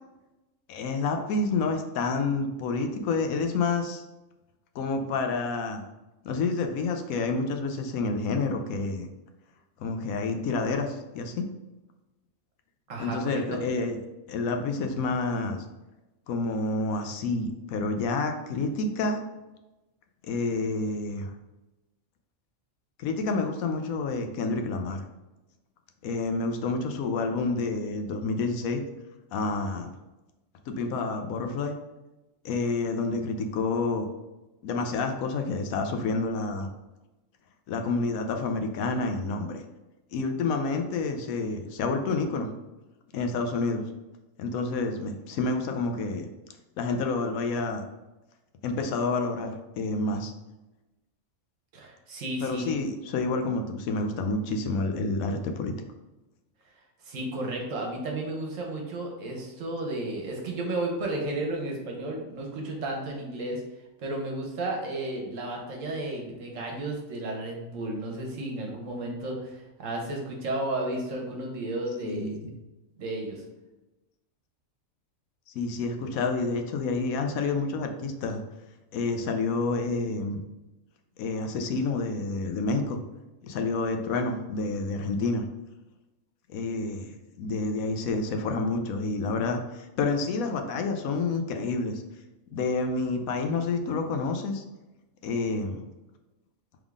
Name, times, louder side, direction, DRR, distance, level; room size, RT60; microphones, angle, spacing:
voice 1, 0.7-4.0 4.7-5.8 6.2-9.1 9.8-11.5 13.0-14.0 14.3-15.6 16.3-19.2 20.2-21.3 23.0-25.0 26.0-28.8 29.3-29.9 30.7-31.7 32.4-34.1 34.6-36.7 37.7-39.6 40.1-42.5 43.1-43.9 44.4-46.3 46.8-47.8 48.6-50.3 52.4-55.7 72.0-72.5 75.5-78.4 78.9-80.4 81.2-83.0 83.4-85.4 86.5-87.1 87.4-92.0 92.5-94.6 95.2-95.8, left 3 dB, 80° left, 5 dB, 1.0 m, -29 dB
voice 2, 12.9-13.6 51.7-52.7 57.0-63.6 64.0-72.4 73.0-73.4, right 2 dB, 65° right, 0 dB, 1.3 m, -33 dB
3.6 x 3.5 x 3.6 m, 1.0 s
omnidirectional pair, 1.5 m